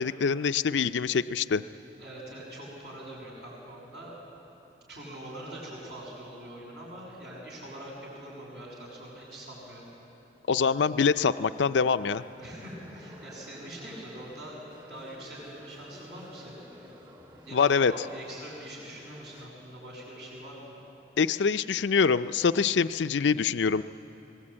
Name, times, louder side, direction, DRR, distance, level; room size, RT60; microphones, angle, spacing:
voice 1, 0.0-1.6 10.5-12.2 17.5-17.9 21.2-23.8, left 5 dB, 75° left, 12 dB, 0.5 m, -24 dB
voice 2, 2.0-4.2 4.9-9.8 12.4-16.6 17.4-20.7, right 1 dB, 65° right, -3 dB, 7.6 m, -43 dB
sound 1, 11.3-19.5, left 1 dB, 25° right, 2.2 m, -52 dB
25.0 x 19.5 x 8.8 m, 2.9 s
head